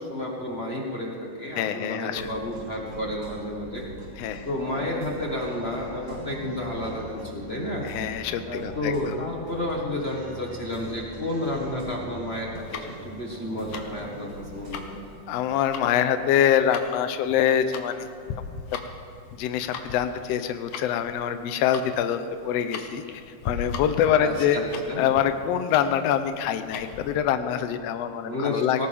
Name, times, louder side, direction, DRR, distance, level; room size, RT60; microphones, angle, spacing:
voice 1, 0.0-3.8 4.4-7.9 8.5-15.0 24.2-25.0 28.2-28.9, left 1 dB, 40° left, -1 dB, 0.9 m, -31 dB
voice 2, 1.6-2.3 4.2-4.5 7.8-9.1 15.3-18.0 19.4-23.0 23.4-24.6 25.0-28.9, left 9 dB, 85° left, 9 dB, 1.4 m, -25 dB
sound 1, 2.0-15.2, right 1 dB, 70° right, 4.0 m, -42 dB
Tick-tock, 12.5-27.2, left 6 dB, 70° left, 2.3 m, -39 dB
18.5 x 18.0 x 3.5 m, 2.6 s
omnidirectional pair, 3.7 m